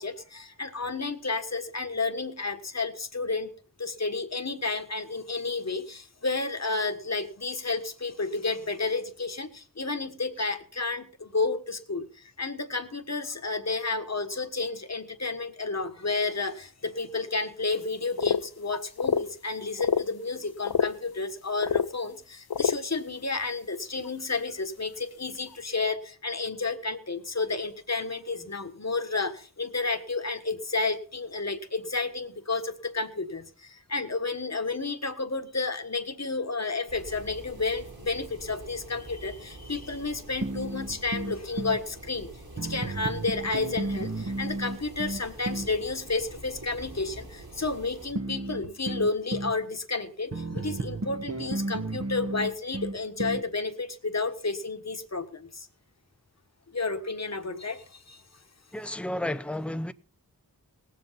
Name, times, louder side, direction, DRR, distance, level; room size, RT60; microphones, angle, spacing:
voice 1, 0.0-3.5 3.8-42.3 42.5-55.7 56.7-58.2, left 3 dB, 45° left, 1.5 m, -31 dB
sound 1, 18.2-18.4 18.7-19.2 19.8-20.0 20.6-20.9 21.6-21.9 22.5-22.8 24.0-24.1 25.5-25.6, left 8 dB, 90° left, 0.6 m, -25 dB
sound 2, 36.9-48.1, right 1 dB, 85° right, 5.2 m, -46 dB
sound 3, 40.4-41.8 42.6-45.8 48.2-49.6 50.3-53.5, right 2 dB, 45° right, 1.2 m, -33 dB
voice 2, 58.7-59.9, left 1 dB, 5° left, 0.6 m, -32 dB
19.0 x 8.0 x 5.7 m
wide cardioid pair, 65°, 36 cm